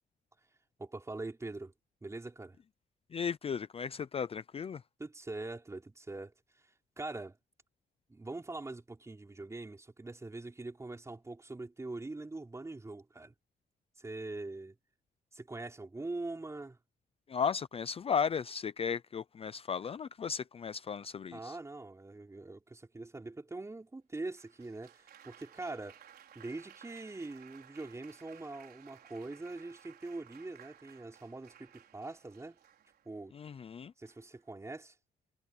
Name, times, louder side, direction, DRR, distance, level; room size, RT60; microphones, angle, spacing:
voice 1, 0.8-1.7 2.0-2.6 5.0-6.3 7.0-7.4 8.1-13.3 14.0-14.8 15.3-16.8 21.3-26.0 26.3-32.6 33.0-33.4 34.0-34.9, right 2 dB, 15° right, 4.5 m, -43 dB
voice 2, 3.1-4.8 17.3-21.6 33.3-33.9, left 6 dB, 35° left, 0.5 m, -35 dB
Applause, 24.4-33.2 34.1-34.5, right 9 dB, 65° right, 5.1 m, -58 dB
cardioid pair, 125°, 17 cm